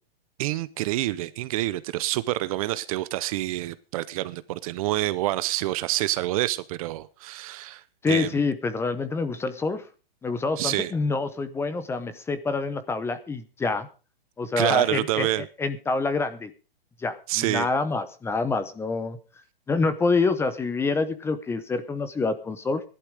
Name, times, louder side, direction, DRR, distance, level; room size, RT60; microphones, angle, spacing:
voice 1, 0.4-8.3 10.6-10.9 14.6-15.5 17.3-17.7, right 16 dB, 35° right, 16 dB, 0.7 m, -27 dB
voice 2, 8.0-9.9 10.2-13.9 14.4-16.5 17.0-19.2 19.7-22.8, left 3 dB, 10° left, 12 dB, 0.8 m, -27 dB
14.5 x 11.5 x 5.0 m, 0.35 s
hypercardioid pair, 145°, 30 cm